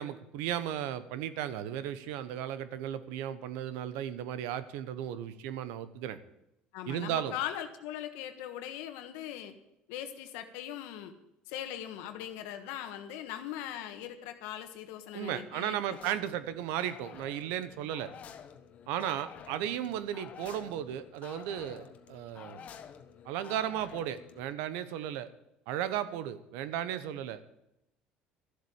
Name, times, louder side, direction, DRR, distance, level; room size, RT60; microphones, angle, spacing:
voice 1, 0.0-6.2 6.9-7.3 15.1-18.1 18.9-22.6 23.2-25.3 25.7-27.4, right 11 dB, 85° right, 14 dB, 1.1 m, -35 dB
voice 2, 6.7-9.5 9.9-11.1 11.5-16.0, left 11 dB, 90° left, 7 dB, 1.5 m, -40 dB
sound 1, 15.9-24.5, left 8 dB, 45° left, 1.2 m, -50 dB
13.0 x 7.8 x 8.8 m, 0.85 s
cardioid pair, 120°, 3 cm